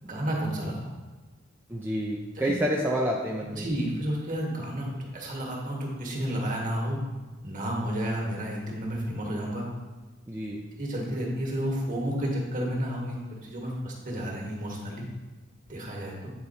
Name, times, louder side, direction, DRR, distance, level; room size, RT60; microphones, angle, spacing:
voice 1, 0.0-0.9 3.5-4.9 5.1-7.0 7.4-9.6 10.8-15.0 15.7-16.3, equal, 40° right, -1 dB, 1.6 m, -31 dB
voice 2, 1.7-3.7 10.3-10.6, equal, 10° right, -2 dB, 0.5 m, -28 dB
8.7 x 4.1 x 4.2 m, 1.3 s
head